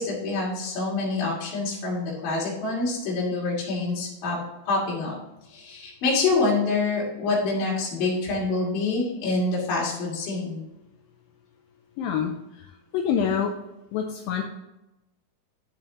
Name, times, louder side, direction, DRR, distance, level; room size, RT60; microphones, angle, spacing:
voice 1, 0.0-4.4 4.6-5.2 5.5-10.6, left 3 dB, 60° left, -6 dB, 4.0 m, -26 dB
voice 2, 12.0-13.5 13.9-14.4, left 7 dB, 80° left, 3 dB, 2.3 m, -27 dB
10.5 x 6.7 x 3.0 m, 0.93 s
omnidirectional pair, 4.6 m